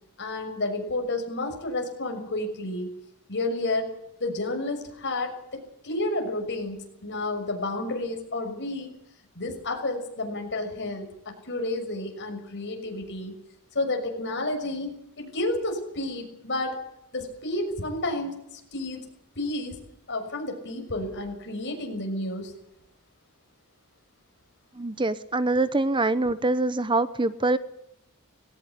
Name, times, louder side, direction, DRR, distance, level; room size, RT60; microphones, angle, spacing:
voice 1, 0.2-2.9 3.3-3.9 4.2-8.9 9.3-13.3 13.7-16.8 17.1-19.1 19.4-19.8 20.1-22.5, left 2 dB, 55° left, 4 dB, 6.4 m, -31 dB
voice 2, 24.8-27.6, right 2 dB, 20° right, 14 dB, 0.8 m, -24 dB
20.0 x 17.5 x 8.2 m, 0.81 s
head